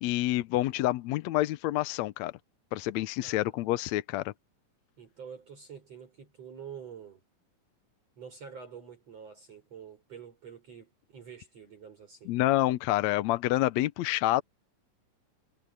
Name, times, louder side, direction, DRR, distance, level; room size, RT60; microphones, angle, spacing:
voice 1, 0.0-2.3 2.7-4.3 12.2-14.4, left 16 dB, 80° left, 1.7 m, -28 dB
voice 2, 3.2-3.8 5.0-7.2 8.2-12.4, right 7 dB, 50° right, 6.6 m, -47 dB
omnidirectional pair, 3.8 m